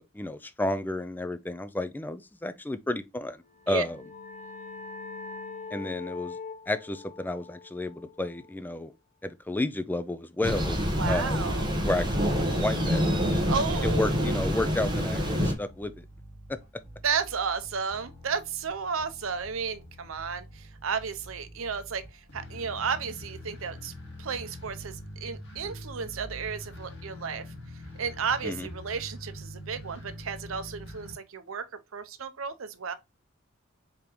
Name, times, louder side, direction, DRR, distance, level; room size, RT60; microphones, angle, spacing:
voice 1, 0.0-3.4 3.7-4.0 5.7-6.4 6.7-8.9 9.2-10.8 11.1-11.4 11.8-13.2 13.8-16.0 28.4-28.7, left 2 dB, 10° left, 0.3 m, -31 dB
sound 1, 3.5-8.9, left 4 dB, 35° left, 0.7 m, -43 dB
Thunder, 10.4-15.5, equal, 20° right, 1.2 m, -26 dB
voice 2, 11.0-11.7 13.5-14.3 17.0-23.9 24.2-27.5 27.9-31.6 31.9-32.9, right 6 dB, 75° right, 0.6 m, -33 dB
sound 2, 13.5-31.1, left 1 dB, 60° left, 1.9 m, -45 dB
5.0 x 3.5 x 3.0 m
head